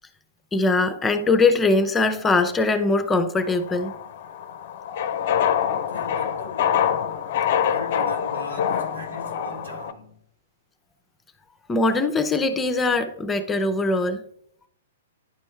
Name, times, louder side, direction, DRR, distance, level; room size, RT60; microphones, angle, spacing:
voice 1, 0.5-4.0 7.2-7.4 11.7-14.2, left 3 dB, 15° left, 0.7 m, -21 dB
sound 1, 3.4-9.9, left 8 dB, 55° left, 0.6 m, -25 dB
voice 2, 5.9-6.8 7.6-10.2, equal, 90° right, 2.5 m, -39 dB
10.5 x 4.4 x 3.3 m
hypercardioid pair, 125°, 0 cm